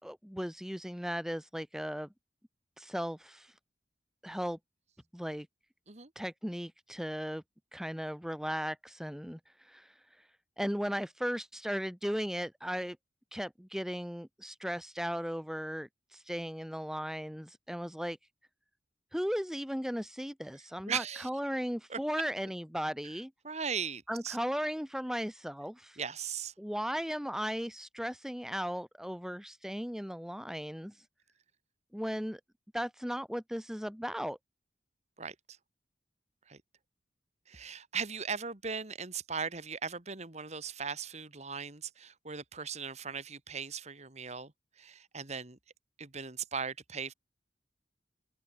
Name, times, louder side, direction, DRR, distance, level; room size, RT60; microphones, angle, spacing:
voice 1, 0.0-2.1 2.8-3.5 4.2-4.6 5.1-5.5 6.2-7.4 7.7-9.4 9.6-9.9 10.6-13.0 13.3-18.2 19.1-23.3 24.1-26.0 26.6-30.9 31.9-32.4 32.7-34.4, equal, 5° right, 2.4 m, -36 dB
voice 2, 20.9-21.3 21.9-22.0 23.4-24.4 26.0-26.5 35.2-35.4 36.5-36.6 37.5-44.5 44.8-45.6 46.0-47.1, right 6 dB, 40° right, 2.0 m, -38 dB
open air
head